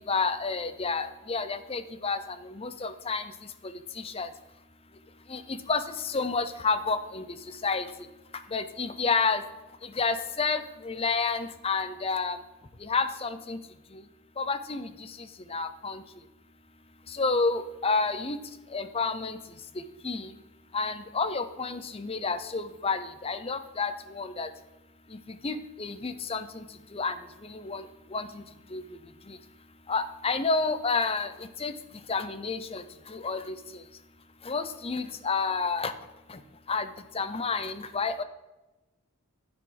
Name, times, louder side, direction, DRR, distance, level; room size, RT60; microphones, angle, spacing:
voice 1, 0.0-4.3 5.3-9.4 9.8-12.4 12.8-13.6 13.9-14.0 14.4-16.0 17.1-20.4 20.7-24.5 25.1-29.4 29.9-33.9 34.4-35.9 36.3-36.4 36.7-38.2, left 4 dB, 25° left, 12 dB, 0.6 m, -31 dB
11.0 x 8.7 x 4.0 m, 1.0 s
head